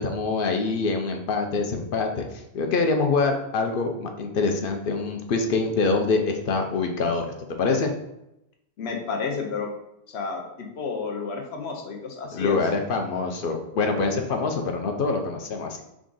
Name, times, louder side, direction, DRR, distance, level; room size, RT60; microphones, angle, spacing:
voice 1, 0.0-7.9 12.3-15.8, left 4 dB, 65° left, 4 dB, 0.7 m, -25 dB
voice 2, 8.8-9.7 10.1-12.6, left 5 dB, 85° left, 2 dB, 1.0 m, -31 dB
3.6 x 2.4 x 3.8 m, 0.87 s
omnidirectional pair, 1.0 m